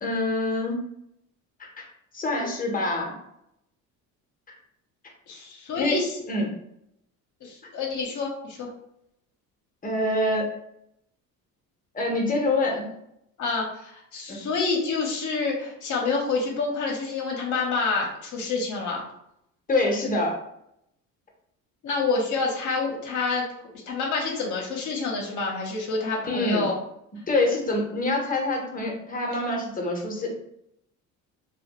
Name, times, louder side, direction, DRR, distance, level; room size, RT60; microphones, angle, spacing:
voice 1, 0.0-0.8 1.6-1.8 2.1-3.1 5.7-6.0 6.3-6.5 9.8-10.5 11.9-12.9 14.3-14.4 19.7-20.3 26.2-26.7 27.3-30.3, left 2 dB, 25° left, 0 dB, 0.8 m, -25 dB
voice 2, 5.3-6.2 7.4-8.7 13.4-19.0 21.8-23.4 23.9-26.7, left 4 dB, 55° left, -1 dB, 0.8 m, -28 dB
2.4 x 2.2 x 2.9 m, 0.78 s
cardioid pair, 95°, 36 cm